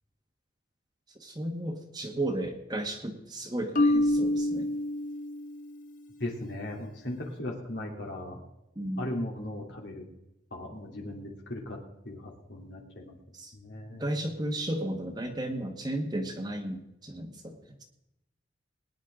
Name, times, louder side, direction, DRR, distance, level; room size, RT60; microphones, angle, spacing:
voice 1, 1.2-4.7 8.7-9.1 13.3-13.5 14.0-17.8, right 1 dB, 20° right, 3 dB, 1.4 m, -34 dB
Marimba xylophone, 3.7-5.8, left 1 dB, 45° left, 0.7 m, -27 dB
voice 2, 6.2-8.4 9.0-10.1 10.5-11.8 12.0-13.2 13.5-14.1, left 1 dB, 60° left, -1 dB, 2.9 m, -37 dB
21.0 x 10.5 x 3.8 m, 0.88 s
head